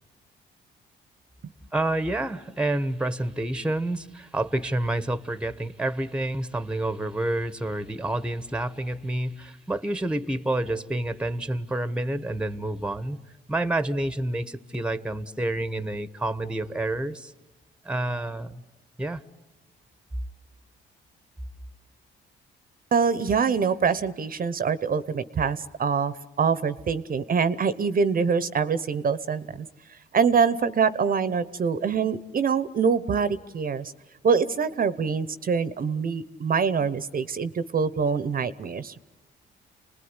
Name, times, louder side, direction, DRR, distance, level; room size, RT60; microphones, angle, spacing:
voice 1, 1.7-13.2 13.5-17.3 17.8-18.6 19.0-19.2, right 1 dB, 5° right, 14 dB, 1.2 m, -28 dB
voice 2, 22.9-29.7 30.1-33.9 34.2-39.0, right 6 dB, 45° right, 15 dB, 0.9 m, -25 dB
29.0 x 20.0 x 9.7 m, 1.1 s
cardioid pair, 90°, 20 cm